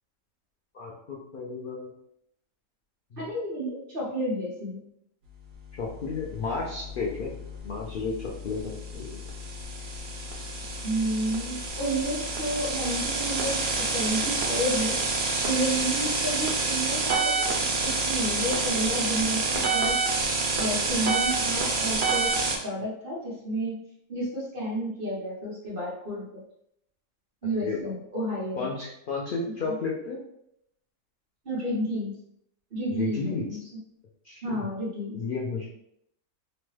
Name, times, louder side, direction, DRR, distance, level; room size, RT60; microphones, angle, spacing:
voice 1, 0.7-1.9 3.1-3.3 5.8-7.4 7.6-9.2 27.4-27.9 28.6-30.2 32.9-33.5 34.2-34.7 35.2-35.7, left 4 dB, 80° left, -3 dB, 0.4 m, -33 dB
voice 2, 3.2-4.8 10.8-15.0 15.4-20.0 20.6-22.3 22.6-23.8 24.1-26.2 27.4-28.7 31.4-32.1 32.7-33.6 34.4-35.2, right 1 dB, 45° right, -5 dB, 1.0 m, -31 dB
sound 1, 5.7-22.6, right 3 dB, 70° right, 0.5 m, -28 dB
3.1 x 2.2 x 3.1 m, 0.76 s
omnidirectional pair, 1.5 m